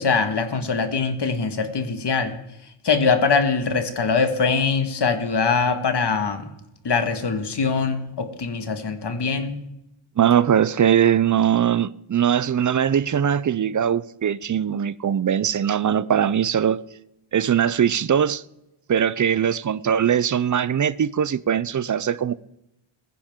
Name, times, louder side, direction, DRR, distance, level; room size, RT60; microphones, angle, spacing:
voice 1, 0.0-2.4 2.8-6.5 6.8-9.6, left 5 dB, 55° left, 1.7 m, -22 dB
voice 2, 10.2-16.8 17.3-18.4 18.9-22.3, right 9 dB, 40° right, 0.5 m, -21 dB
21.5 x 10.0 x 3.7 m
wide cardioid pair, 120°, 50 cm